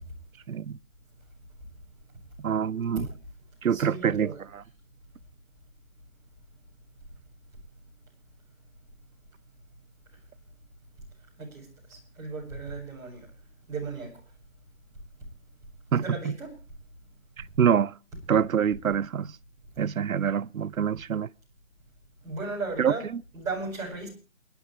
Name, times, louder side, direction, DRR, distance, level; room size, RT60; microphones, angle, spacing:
voice 1, 0.5-0.8 2.4-3.1 3.6-4.6 15.9-16.3 17.6-17.9 18.3-19.3 19.8-21.3 22.8-23.2, right 8 dB, 85° right, 0.8 m, -26 dB
voice 2, 3.7-4.4 11.4-13.3 13.7-14.2 15.9-16.5 22.2-23.0 23.3-24.1, right 3 dB, 10° right, 4.9 m, -36 dB
29.0 x 10.5 x 3.2 m
hypercardioid pair, 170°, 40 cm